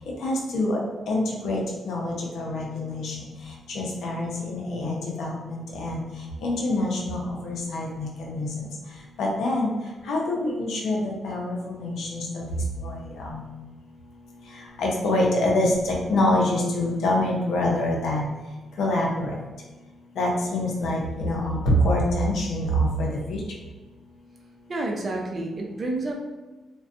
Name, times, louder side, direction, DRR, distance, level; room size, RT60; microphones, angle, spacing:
voice 1, 0.2-0.8 1.1-3.3 3.7-6.0 6.4-8.7 9.2-9.7 10.1-12.4 12.8-13.4 14.8-18.3 18.8-19.3 20.2-23.4, left 1 dB, 80° left, -2 dB, 0.5 m, -26 dB
voice 2, 24.7-26.1, right 2 dB, 45° right, 0 dB, 0.5 m, -29 dB
2.5 x 2.2 x 2.4 m, 1.2 s
cardioid pair, 70°, 0 cm